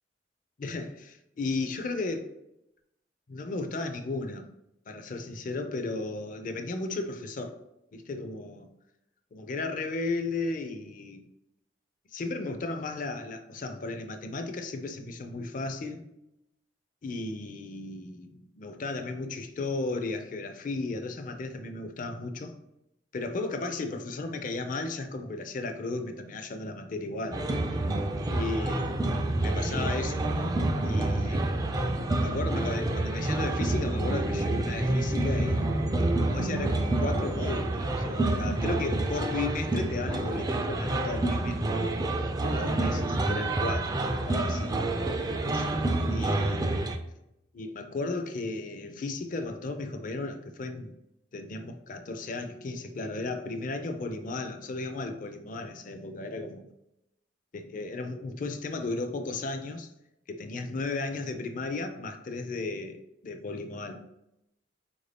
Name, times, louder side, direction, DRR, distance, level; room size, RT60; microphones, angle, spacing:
voice 1, 0.6-2.3 3.3-4.5 4.9-7.6 7.9-8.7 9.3-11.2 12.1-16.0 17.0-22.5 23.1-27.6 28.3-29.1 29.4-30.2 30.8-35.6 36.2-41.9 42.4-44.7 45.4-46.6 47.5-50.9 51.3-56.7 57.5-59.9 60.3-64.0, left 3 dB, 45° left, 7 dB, 0.4 m, -35 dB
sound 1, 27.3-47.0, right 2 dB, 20° right, 0.3 m, -28 dB
4.4 x 2.6 x 3.3 m, 0.86 s
head